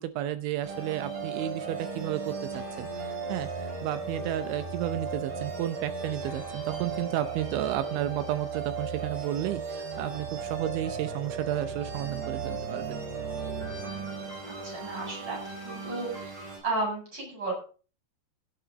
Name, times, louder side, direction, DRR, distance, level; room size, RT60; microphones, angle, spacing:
voice 1, 0.0-13.0, right 12 dB, 80° right, 11 dB, 2.9 m, -32 dB
sound 1, 0.6-16.6, right 5 dB, 40° right, 5.7 m, -36 dB
voice 2, 14.4-15.4 15.6-16.4 16.6-17.5, right 2 dB, 20° right, -1 dB, 8.4 m, -33 dB
16.5 x 9.9 x 4.0 m, 0.37 s
omnidirectional pair, 5.9 m